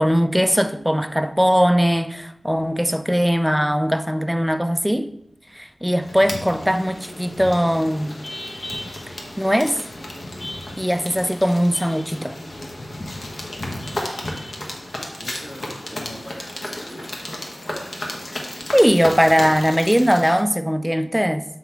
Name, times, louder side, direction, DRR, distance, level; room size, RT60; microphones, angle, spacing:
voice 1, 0.0-5.1 5.5-8.2 9.4-9.8 10.8-12.4 18.7-21.5, equal, ahead, 0.4 m, -20 dB
sound 1, 6.0-20.4, left 1 dB, 60° left, 1.1 m, -33 dB
voice 2, 15.2-17.2, equal, 25° left, 1.4 m, -40 dB
7.2 x 3.9 x 4.5 m
wide cardioid pair, 85°, 0 cm